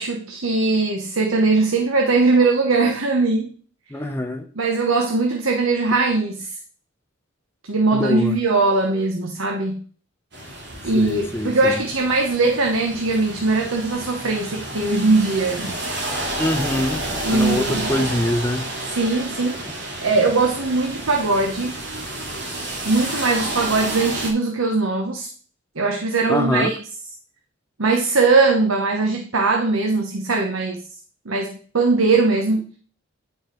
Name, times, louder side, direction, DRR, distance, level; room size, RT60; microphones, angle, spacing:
voice 1, 0.0-3.5 4.6-6.5 7.7-9.8 10.8-15.8 17.2-17.9 18.9-19.6 20.0-21.8 22.8-25.3 25.8-26.8 27.8-30.8 31.2-32.7, right 3 dB, 80° right, 2 dB, 1.1 m, -20 dB
voice 2, 3.9-4.5 7.9-8.4 10.9-11.8 16.4-17.0 17.3-18.7 26.3-26.7, left 1 dB, 10° left, 4 dB, 0.8 m, -24 dB
sound 1, 10.3-24.3, right 1 dB, 55° right, 3.0 m, -30 dB
9.7 x 5.5 x 4.4 m, 0.42 s
head